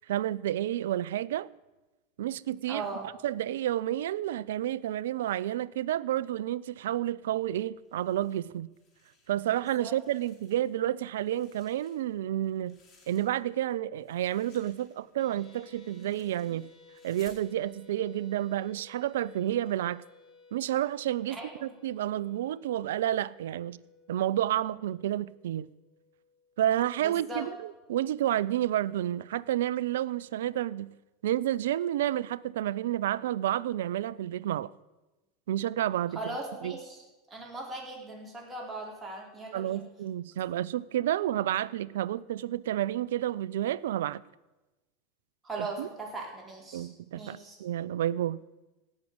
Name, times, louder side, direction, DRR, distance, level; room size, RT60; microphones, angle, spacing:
voice 1, 0.1-1.5 2.2-2.8 3.2-8.7 9.3-12.7 13.1-16.7 17.0-20.0 20.5-23.8 24.1-25.7 26.6-30.9 31.2-34.7 35.5-36.2 36.6-36.7 39.5-44.2 45.6-45.9 46.7-48.4, right 12 dB, 75° right, 0.4 m, -30 dB
voice 2, 2.7-3.1 9.5-9.9 21.3-21.7 27.0-27.4 36.1-39.8 45.4-47.6, right 3 dB, 20° right, 4.2 m, -39 dB
sound 1, 7.8-9.5 9.8-10.8 11.1-13.6 14.0-17.5, left 4 dB, 35° left, 4.6 m, -62 dB
sound 2, 15.2-27.5, left 4 dB, 15° left, 5.6 m, -58 dB
16.5 x 6.4 x 7.8 m
hypercardioid pair, 95°, 0 cm